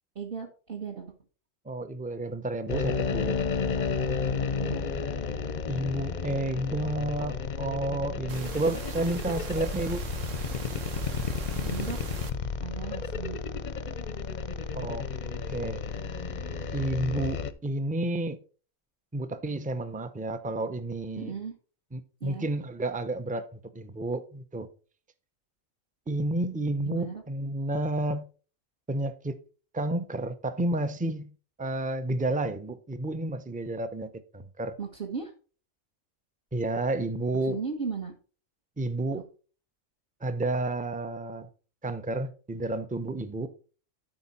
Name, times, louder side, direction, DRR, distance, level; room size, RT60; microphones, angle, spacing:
voice 1, 0.1-1.1 4.6-4.9 11.5-12.0 12.6-13.4 21.2-21.5 22.2-22.5 26.8-27.2 34.8-35.3 37.4-38.1, right 5 dB, 45° right, 1.4 m, -36 dB
voice 2, 1.7-3.4 5.7-10.0 14.7-15.0 15.5-15.8 16.7-18.4 19.1-21.3 21.9-24.7 26.1-28.3 28.9-29.4 29.7-31.3 31.6-34.7 36.5-37.6 38.8-39.2 40.2-41.5 41.8-43.5, right 2 dB, 10° right, 0.4 m, -31 dB
sound 1, 2.7-17.5, left 5 dB, 45° left, 0.6 m, -32 dB
sound 2, 8.3-12.3, right 6 dB, 70° right, 1.3 m, -41 dB
12.5 x 5.2 x 4.2 m
omnidirectional pair, 1.4 m